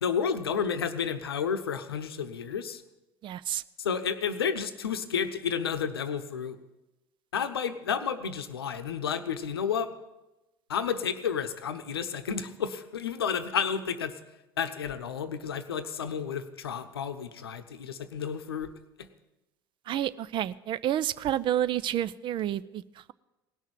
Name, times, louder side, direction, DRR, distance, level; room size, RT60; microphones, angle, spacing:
voice 1, 0.0-2.8 3.8-6.6 7.3-9.9 10.7-14.1 14.6-18.7 19.0-19.1, left 7 dB, 80° left, 10 dB, 0.8 m, -31 dB
voice 2, 3.2-3.6 19.9-23.1, right 11 dB, 40° right, 17 dB, 0.5 m, -30 dB
17.5 x 6.4 x 9.3 m, 1.0 s
figure-of-eight pair, 70°, 13 cm